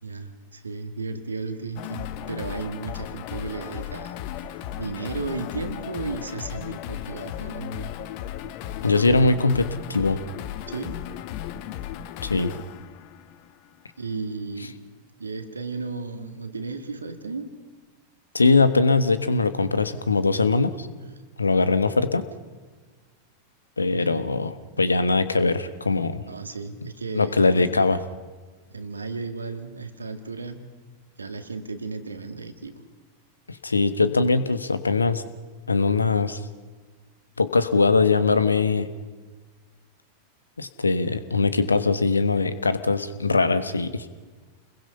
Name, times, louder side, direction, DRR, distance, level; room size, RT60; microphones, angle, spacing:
voice 1, 0.0-7.9 10.7-11.1 14.0-14.8 15.2-17.5 23.9-24.2 26.3-27.6 28.7-30.7 31.2-32.8, right 4 dB, 75° right, 8 dB, 2.0 m, -34 dB
sound 1, 1.8-13.8, left 11 dB, 45° left, 1.1 m, -35 dB
voice 2, 8.8-10.2 12.2-12.5 18.3-20.9 21.4-22.3 23.8-26.2 27.1-28.0 33.5-35.2 35.7-36.4 37.4-38.9 40.6-44.0, left 3 dB, 80° left, 13 dB, 1.2 m, -21 dB
29.5 x 21.5 x 5.7 m, 1.4 s
figure-of-eight pair, 90°, 0 cm